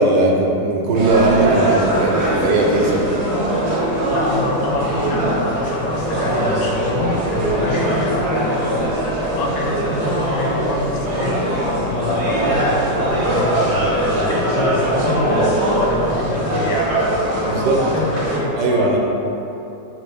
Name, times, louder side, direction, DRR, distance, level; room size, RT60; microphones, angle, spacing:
voice 1, 0.0-3.0 17.4-17.8 18.6-19.0, right 2 dB, 85° right, -1 dB, 1.3 m, -18 dB
sound 1, 0.9-18.4, right 1 dB, 55° right, 0.8 m, -21 dB
voice 2, 4.1-9.1 9.4-11.3 11.8-16.9 17.4-18.9, left 2 dB, 80° left, -2 dB, 1.2 m, -26 dB
4.1 x 2.7 x 3.3 m, 3.0 s
omnidirectional pair, 1.9 m